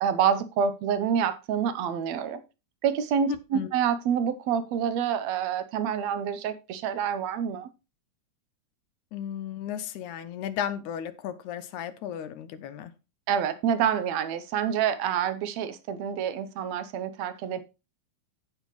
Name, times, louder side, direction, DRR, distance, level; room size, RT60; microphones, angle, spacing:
voice 1, 0.0-2.4 2.8-7.7 13.3-17.6, right 8 dB, 70° right, 1.9 m, -27 dB
voice 2, 3.3-3.7 9.1-12.9, left 9 dB, 80° left, 2.0 m, -34 dB
16.0 x 5.6 x 3.1 m
omnidirectional pair, 3.5 m